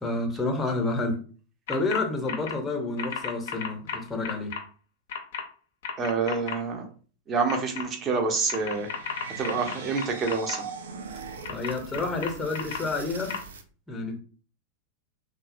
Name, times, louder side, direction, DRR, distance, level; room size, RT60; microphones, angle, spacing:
voice 1, 0.0-1.2 1.7-4.5 11.5-13.4 13.9-14.2, left 3 dB, 10° left, 0.7 m, -29 dB
Virtual Keyboard Types, 1.7-2.0 2.3-2.5 3.0-4.6 5.1-5.4 5.8-6.5 7.5-7.8 8.5-10.6 11.4-12.8 13.3-13.4, left 7 dB, 55° left, 0.5 m, -33 dB
voice 2, 6.0-6.9 7.3-8.9 9.4-10.7, right 4 dB, 25° right, 0.6 m, -27 dB
sound 1, 8.4-13.6, right 5 dB, 65° right, 0.3 m, -41 dB
2.6 x 2.0 x 2.5 m
figure-of-eight pair, 90°, 0 cm